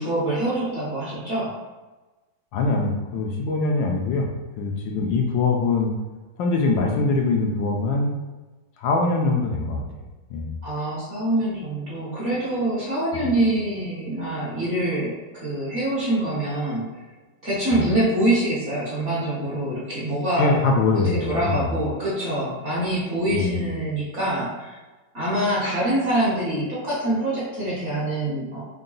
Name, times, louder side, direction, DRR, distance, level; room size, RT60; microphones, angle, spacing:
voice 1, 0.0-1.5 10.6-16.9 17.4-20.6 20.9-24.8 25.1-28.6, right 1 dB, 45° right, -8 dB, 1.1 m, -25 dB
voice 2, 2.5-4.3 4.6-5.9 6.4-8.1 8.8-9.8 10.3-10.5 13.1-13.3 17.7-17.8 20.4-21.7 23.3-23.6, left 3 dB, 75° left, 0 dB, 1.2 m, -23 dB
3.8 x 2.2 x 3.8 m, 1.2 s
omnidirectional pair, 2.2 m